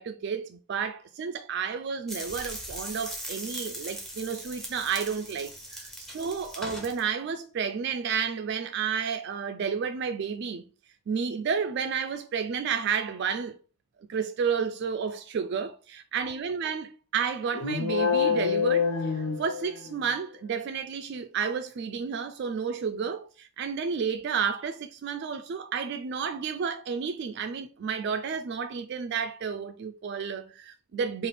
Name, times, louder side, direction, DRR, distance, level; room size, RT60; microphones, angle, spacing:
voice 1, 0.0-10.7 11.1-13.6 14.1-31.3, right 6 dB, 50° right, 0.3 m, -31 dB
sound 1, 2.1-7.0, right 1 dB, ahead, 0.8 m, -39 dB
sound 2, 17.5-20.1, left 6 dB, 85° left, 0.8 m, -26 dB
4.1 x 2.4 x 3.3 m
head